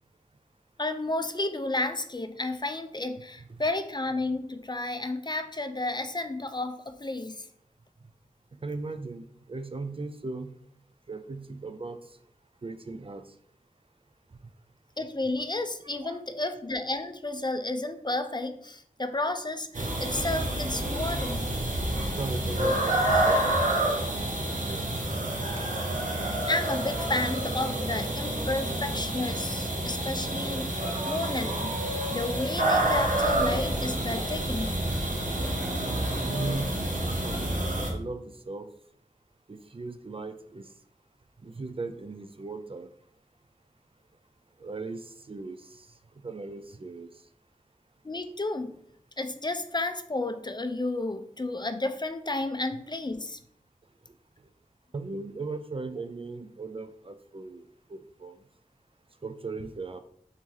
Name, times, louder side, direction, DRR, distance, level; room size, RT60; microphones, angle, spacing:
voice 1, 0.8-7.5 15.0-21.5 26.5-31.7 32.1-34.7 48.0-48.7 49.2-53.4, left 2 dB, 30° left, 8 dB, 0.4 m, -32 dB
voice 2, 8.6-10.5 11.1-12.0 12.6-13.2 16.0-16.2 22.1-24.9 36.2-37.6 37.9-38.7 39.5-40.7 41.4-42.9 44.6-45.9 46.2-47.1 54.9-57.6 57.9-58.4 59.2-60.0, right 3 dB, 40° right, 9 dB, 0.4 m, -38 dB
sound 1, 19.7-37.9, right 1 dB, 65° right, 0.8 m, -28 dB
4.1 x 3.0 x 3.8 m, 0.65 s
wide cardioid pair, 45°, 14 cm